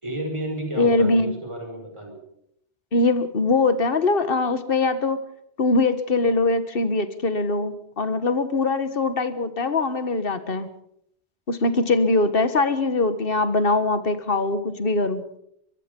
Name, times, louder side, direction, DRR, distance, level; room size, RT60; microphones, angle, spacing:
voice 1, 0.0-2.2, right 1 dB, 25° right, 3 dB, 5.6 m, -32 dB
voice 2, 0.8-1.4 2.9-5.2 5.6-10.7 11.5-15.2, left 3 dB, 55° left, 11 dB, 1.7 m, -22 dB
24.0 x 22.0 x 5.4 m, 0.75 s
omnidirectional pair, 1.1 m